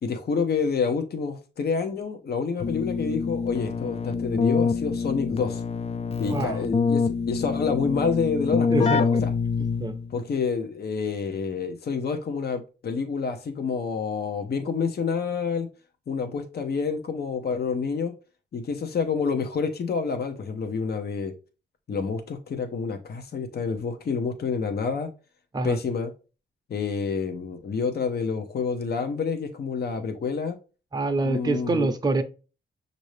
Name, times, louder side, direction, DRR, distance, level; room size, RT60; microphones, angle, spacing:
voice 1, 0.0-5.6 6.2-9.3 10.1-15.7 16.1-18.1 18.5-21.3 21.9-25.1 25.6-26.1 26.7-30.6 31.2-31.9, left 5 dB, 55° left, 0.7 m, -28 dB
Keyboard (musical), 2.6-10.2, left 5 dB, 30° left, 0.4 m, -26 dB
voice 2, 6.3-6.6 8.7-9.0 9.8-10.0 25.5-25.8 30.9-32.2, right 2 dB, 20° right, 0.6 m, -25 dB
6.3 x 2.7 x 3.1 m
wide cardioid pair, 110°, 20 cm